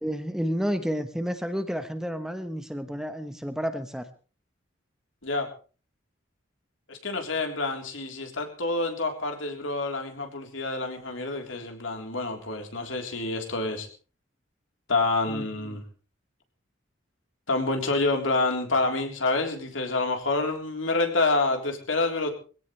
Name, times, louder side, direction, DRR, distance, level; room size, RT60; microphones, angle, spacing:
voice 1, 0.0-4.1 15.3-15.8, equal, 5° right, 9 dB, 1.0 m, -31 dB
voice 2, 6.9-13.9 14.9-15.8 17.5-22.3, left 3 dB, 75° left, 3 dB, 3.6 m, -27 dB
22.0 x 17.0 x 3.3 m, 0.37 s
head